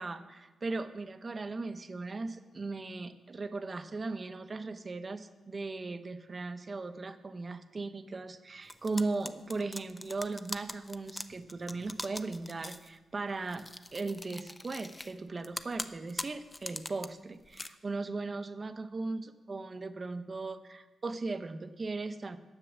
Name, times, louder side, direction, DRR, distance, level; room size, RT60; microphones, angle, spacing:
voice 1, 0.0-13.7 13.9-22.4, right 3 dB, 35° right, 10 dB, 0.7 m, -38 dB
sound 1, 8.7-12.9 13.5-15.1 15.4-17.1 17.4-17.7, left 2 dB, 20° left, 0.6 m, -41 dB
10.0 x 8.3 x 7.1 m, 1.2 s
cardioid pair, 115°, 0 cm